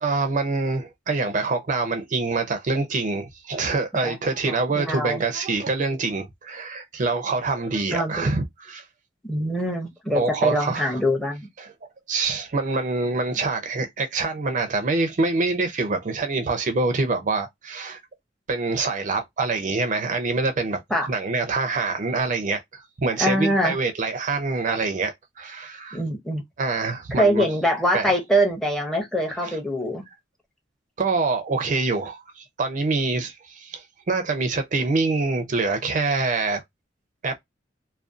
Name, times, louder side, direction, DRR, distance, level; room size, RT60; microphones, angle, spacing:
voice 1, 0.0-8.8 10.1-10.9 11.6-11.7 12.1-18.0 18.5-20.8 21.1-26.0 26.6-27.5 27.9-28.1 29.4-29.6 31.0-36.6 37.2-37.4, right 3 dB, 45° right, 0.5 m, -25 dB
voice 2, 4.8-5.2 7.9-8.3 9.2-11.5 20.9-21.1 23.2-23.7 25.9-26.4 27.1-30.0, equal, 5° left, 0.6 m, -23 dB
2.4 x 2.1 x 2.4 m
head